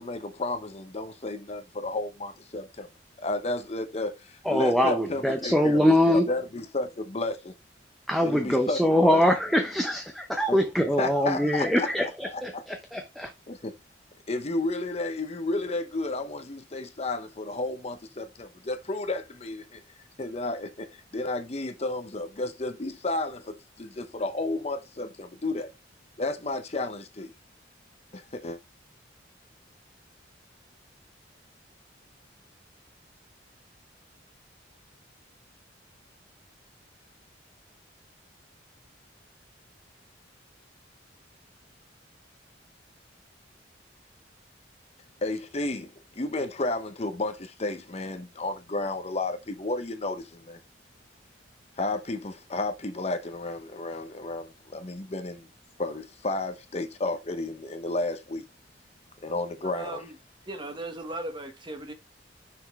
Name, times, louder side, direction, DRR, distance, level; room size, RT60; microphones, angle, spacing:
voice 1, 0.0-2.9 3.2-7.5 8.2-9.2 10.5-10.6 11.0-12.6 13.5-13.7 14.3-19.8 20.2-25.7 26.2-27.3 28.1-28.6 45.2-50.6 51.8-55.5 55.8-58.4 59.2-60.1, left 2 dB, 35° left, 0.7 m, -32 dB
voice 2, 4.5-6.3 8.1-13.3, left 1 dB, ahead, 0.7 m, -23 dB
voice 3, 59.6-60.2 60.5-61.9, right 2 dB, 25° right, 1.2 m, -37 dB
6.0 x 5.1 x 3.5 m
head